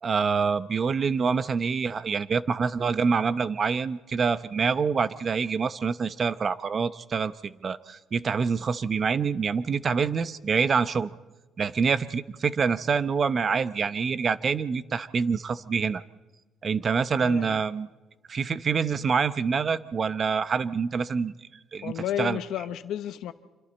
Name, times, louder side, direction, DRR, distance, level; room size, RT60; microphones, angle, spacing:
voice 1, 0.0-11.1 11.6-16.0 16.6-17.9 18.3-21.3 21.7-22.4, right 5 dB, 40° right, 15 dB, 0.7 m, -26 dB
voice 2, 17.2-17.6 21.8-23.3, left 11 dB, 75° left, 11 dB, 0.8 m, -32 dB
26.5 x 23.5 x 4.3 m, 1.2 s
cardioid pair, 105°, 0 cm